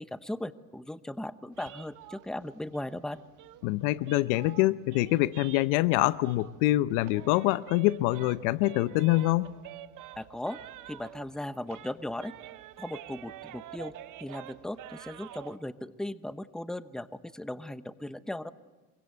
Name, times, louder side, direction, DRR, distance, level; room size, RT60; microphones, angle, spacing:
voice 1, 0.0-3.2 10.2-10.6 10.9-12.3 12.8-13.9 14.2-18.5, left 1 dB, ahead, 1.0 m, -37 dB
sound 1, 1.5-6.6 6.9-11.4 11.7-15.6, right 13 dB, 50° right, 1.4 m, -47 dB
voice 2, 3.6-9.5, left 18 dB, 65° left, 0.8 m, -25 dB
25.5 x 23.5 x 8.1 m
hypercardioid pair, 90°, 40 cm